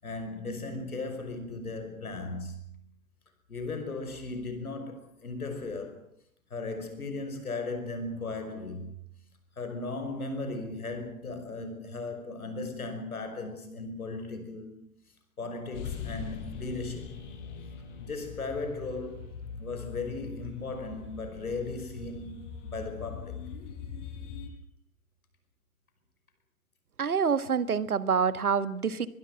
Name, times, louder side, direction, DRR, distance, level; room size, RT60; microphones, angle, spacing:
voice 1, 0.0-2.8 3.5-6.1 6.5-8.9 9.6-14.7 15.4-17.1 18.0-19.3 19.6-23.4, left 3 dB, 80° left, 5.5 m, -37 dB
sound 1, 15.7-24.5, left 6 dB, 55° left, 5.7 m, -42 dB
voice 2, 27.0-29.1, right 6 dB, 80° right, 1.6 m, -27 dB
23.0 x 22.5 x 7.3 m
figure-of-eight pair, 105°, 43 cm